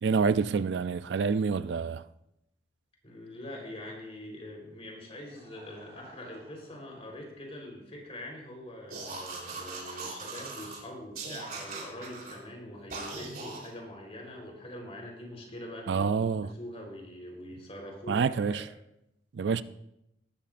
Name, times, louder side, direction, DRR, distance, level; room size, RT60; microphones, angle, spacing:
voice 1, 0.0-2.0 15.9-16.5 18.1-18.7 19.3-19.6, right 5 dB, 70° right, 0.4 m, -27 dB
voice 2, 3.0-18.7, left 1 dB, 35° left, 3.9 m, -44 dB
Laughter, 4.6-7.8 8.7-8.8 10.2-10.3, right 2 dB, 40° right, 2.6 m, -59 dB
sound 1, 8.9-10.8 11.1-12.4 12.9-13.7, right 3 dB, 55° right, 3.6 m, -40 dB
18.5 x 12.5 x 2.5 m
head